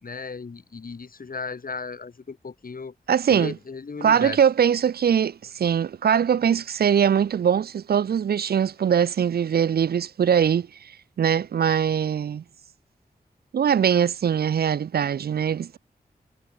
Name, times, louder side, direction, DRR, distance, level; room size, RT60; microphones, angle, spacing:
voice 1, 0.0-2.9 3.3-4.4, left 4 dB, 60° left, 3.3 m, -35 dB
voice 2, 3.1-3.5 4.0-10.7 11.2-12.4 13.5-15.8, right 8 dB, 70° right, 0.4 m, -22 dB
wide cardioid pair, 115°, 17 cm